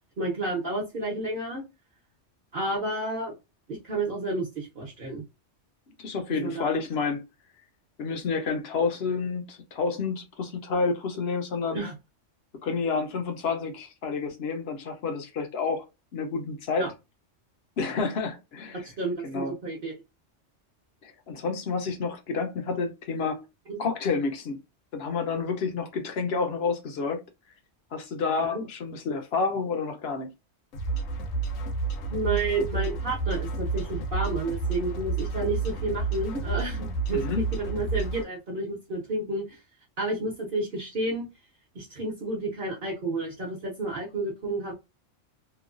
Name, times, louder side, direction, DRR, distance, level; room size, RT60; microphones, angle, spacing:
voice 1, 0.2-1.6 2.5-3.3 3.7-5.2 6.4-6.7 11.7-11.9 16.8-16.9 18.8-20.0 23.7-23.8 28.5-28.6 32.1-37.2 37.5-39.6 40.0-41.3 41.7-44.7, right 2 dB, 50° right, 1.0 m, -31 dB
voice 2, 6.0-7.2 8.0-11.8 12.6-15.8 16.1-16.9 17.8-18.9 19.2-19.5 21.0-23.4 23.8-24.6 24.9-27.2 27.9-30.3 37.1-37.4, left 4 dB, 60° left, 0.9 m, -29 dB
sound 1, 30.7-38.2, right 4 dB, 90° left, 1.0 m, -30 dB
3.0 x 2.2 x 2.4 m
omnidirectional pair, 1.3 m